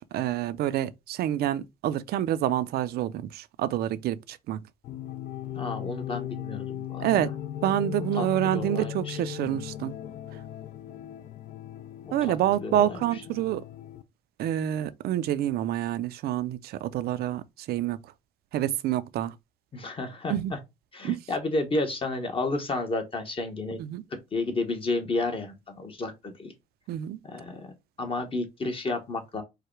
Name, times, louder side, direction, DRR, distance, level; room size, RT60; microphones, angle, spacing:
voice 1, 0.0-4.6 7.0-7.3 7.6-9.9 12.1-13.6 14.4-18.0 18.5-19.3 20.3-20.5 21.0-21.2 23.8-24.0 26.9-27.2, right 12 dB, 70° right, 0.5 m, -27 dB
sound 1, 4.8-14.0, left 11 dB, 50° left, 0.5 m, -37 dB
voice 2, 5.5-7.0 8.2-9.2 12.1-13.0 19.7-20.6 20.9-23.8 24.1-26.5 27.2-27.7 28.0-29.4, left 2 dB, 30° left, 1.1 m, -31 dB
4.8 x 2.2 x 4.5 m
cardioid pair, 110°, 17 cm